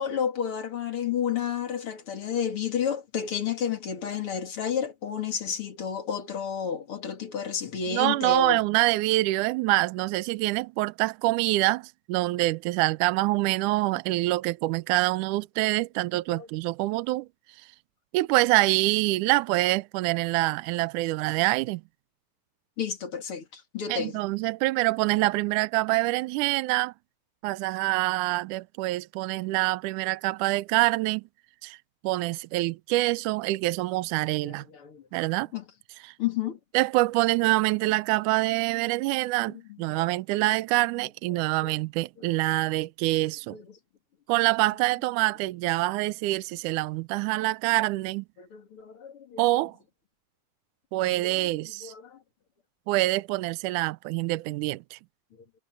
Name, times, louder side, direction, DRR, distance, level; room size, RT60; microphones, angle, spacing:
voice 1, 0.0-8.6 16.3-16.5 22.8-24.2 34.4-35.0 35.5-35.6 36.2-36.6 39.7-40.1 41.3-41.7 42.2-42.3 43.5-43.8 48.4-49.4 51.0-51.3 51.8-52.2, left 8 dB, 40° left, 2.9 m, -31 dB
voice 2, 7.9-17.3 18.1-21.8 23.9-26.9 27.4-31.2 31.6-31.8 32.0-34.6 35.1-35.5 36.0-36.1 36.7-43.6 44.3-48.3 49.4-49.8 50.9-51.9 52.9-55.0, right 19 dB, 80° right, 1.9 m, -25 dB
omnidirectional pair, 4.1 m